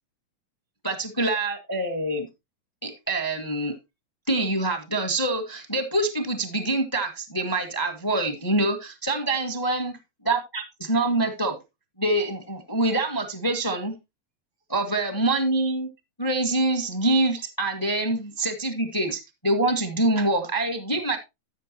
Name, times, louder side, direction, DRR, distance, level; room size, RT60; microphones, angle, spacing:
voice 1, 0.8-2.3 2.8-3.7 4.3-9.9 10.2-11.6 12.0-13.9 14.7-15.9 16.2-21.2, right 2 dB, 10° left, 6 dB, 1.0 m, -25 dB
14.0 x 6.8 x 3.0 m, 0.23 s
omnidirectional pair, 3.3 m